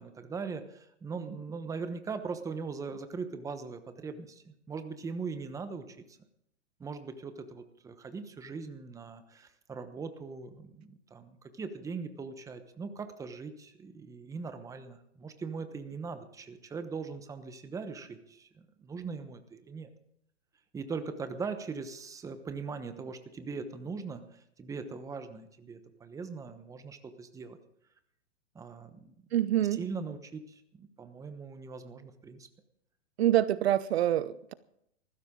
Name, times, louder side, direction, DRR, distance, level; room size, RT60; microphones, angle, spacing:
voice 1, 0.0-6.0 6.8-19.9 20.7-27.6 28.5-29.1 29.6-32.5, right 4 dB, 10° right, 9 dB, 1.1 m, -40 dB
voice 2, 29.3-29.8 33.2-34.5, right 12 dB, 60° right, 17 dB, 0.8 m, -26 dB
20.5 x 15.0 x 3.8 m, 0.74 s
hypercardioid pair, 140°, 36 cm